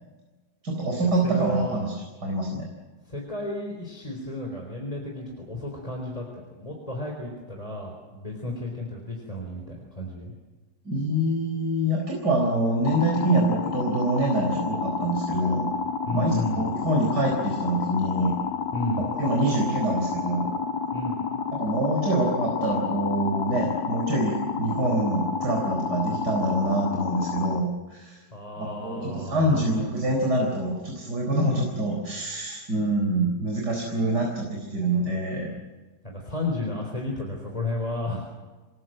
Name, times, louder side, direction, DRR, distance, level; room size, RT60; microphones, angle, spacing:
voice 1, 0.6-1.9 2.2-2.7 10.8-15.7 16.1-18.3 19.2-20.5 21.5-28.2 28.6-35.5, right 1 dB, 70° right, 0 dB, 4.9 m, -25 dB
voice 2, 1.2-1.8 3.1-10.3 16.1-16.6 18.7-19.1 20.9-21.2 28.3-29.8 36.0-38.2, left 1 dB, 20° left, 1 dB, 4.1 m, -32 dB
sound 1, 12.8-27.6, left 6 dB, 60° left, 1.8 m, -30 dB
27.5 x 20.5 x 7.8 m, 1.3 s
omnidirectional pair, 1.9 m